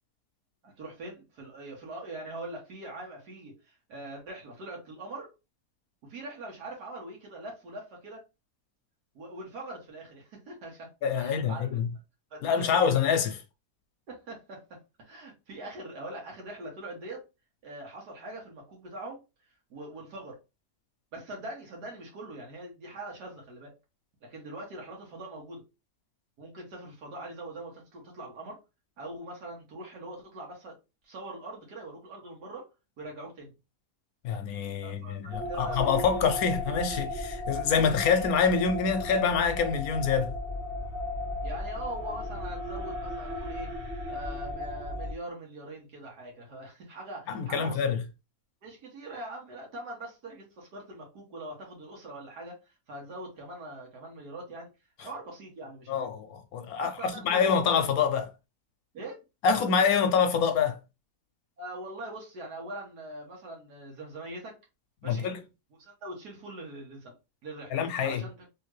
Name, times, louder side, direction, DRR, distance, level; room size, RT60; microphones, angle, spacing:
voice 1, 0.6-5.3 6.0-8.2 9.1-11.8 12.3-13.0 14.1-17.2 17.6-19.2 19.7-20.4 21.1-23.7 24.2-25.6 26.4-28.6 29.0-30.8 31.0-32.7 33.0-33.5 34.8-35.8 41.4-43.7 44.1-47.9 48.6-52.6 52.9-54.7 55.0-56.0 56.8-57.5 58.9-59.2 61.6-64.6 65.0-65.3 65.7-67.1 67.4-67.7 68.0-68.5, right 2 dB, 85° right, 1.7 m, -42 dB
voice 2, 11.0-11.8 12.4-13.3 34.2-40.3 47.3-48.0 55.9-58.3 59.4-60.8 65.0-65.4 67.7-68.2, left 6 dB, 70° left, 1.1 m, -26 dB
sound 1, 35.3-45.1, left 2 dB, 50° right, 0.8 m, -35 dB
3.4 x 2.8 x 3.1 m
omnidirectional pair, 1.7 m